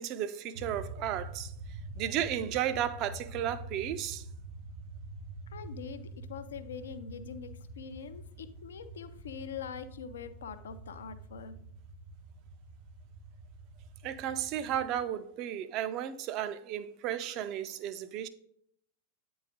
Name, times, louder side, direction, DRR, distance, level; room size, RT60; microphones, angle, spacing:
voice 1, 0.0-1.5 2.0-4.3 14.0-18.3, right 10 dB, 40° right, 0.5 m, -34 dB
sound 1, 0.5-15.0, right 2 dB, 70° right, 1.4 m, -46 dB
voice 2, 5.5-11.6, left 7 dB, 65° left, 0.4 m, -43 dB
8.9 x 3.9 x 3.7 m
figure-of-eight pair, 90°, 0 cm